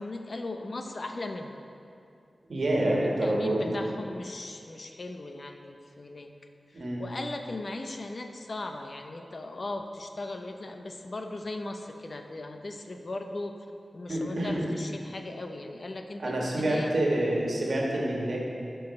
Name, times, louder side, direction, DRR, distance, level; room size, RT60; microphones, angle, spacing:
voice 1, 0.0-1.6 3.2-6.3 6.7-13.6 13.9-16.9, left 2 dB, 55° left, 5 dB, 0.6 m, -38 dB
voice 2, 2.5-3.7 6.7-7.0 14.1-14.7 16.2-18.5, right 1 dB, 75° right, -3 dB, 1.5 m, -27 dB
10.5 x 4.6 x 4.2 m, 2.6 s
wide cardioid pair, 65°, 0 cm